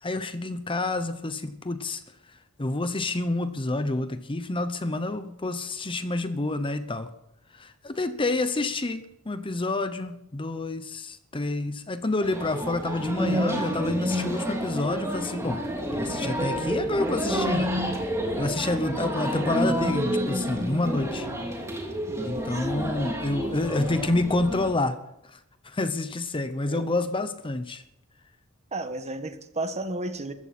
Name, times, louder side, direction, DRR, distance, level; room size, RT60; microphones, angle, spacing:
voice 1, 0.0-7.1 7.5-15.6 15.9-17.8 18.4-21.3 22.2-25.0 25.2-27.8, left 2 dB, 25° left, 10 dB, 0.8 m, -28 dB
sound 1, 12.2-24.7, equal, 15° right, 2.9 m, -29 dB
voice 2, 22.1-22.7 26.7-26.9 28.7-30.3, right 2 dB, 30° right, 9 dB, 1.3 m, -33 dB
22.0 x 14.5 x 4.3 m, 0.80 s
head